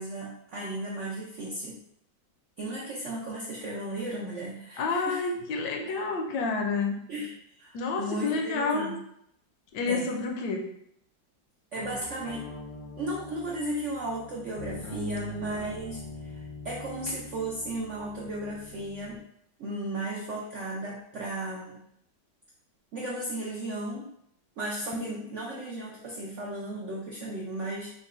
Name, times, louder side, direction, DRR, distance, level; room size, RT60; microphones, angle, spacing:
voice 1, 0.0-1.8 2.6-5.2 6.0-6.1 7.1-9.0 9.9-10.2 11.7-12.4 13.0-19.2 19.6-21.8 22.9-24.1 24.6-27.9, right 1 dB, 75° right, -4 dB, 0.7 m, -35 dB
voice 2, 4.8-7.0 7.7-9.0 9.7-10.7 24.9-25.0, left 4 dB, 75° left, 2 dB, 1.1 m, -29 dB
sound 1, 11.8-19.2, left 1 dB, 90° left, 1.5 m, -43 dB
3.8 x 2.2 x 3.6 m, 0.72 s
omnidirectional pair, 2.0 m